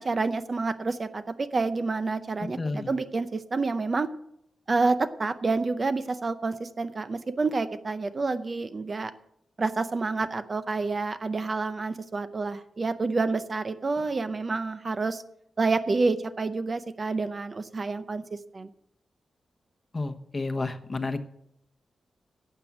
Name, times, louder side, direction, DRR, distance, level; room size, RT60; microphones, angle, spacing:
voice 1, 0.0-4.1 4.7-9.1 9.6-15.2 15.6-18.7, right 3 dB, 35° right, 11 dB, 0.6 m, -28 dB
voice 2, 2.6-2.9 19.9-21.3, left 3 dB, 25° left, 9 dB, 1.0 m, -31 dB
12.0 x 7.9 x 7.1 m, 0.76 s
wide cardioid pair, 125°, 0 cm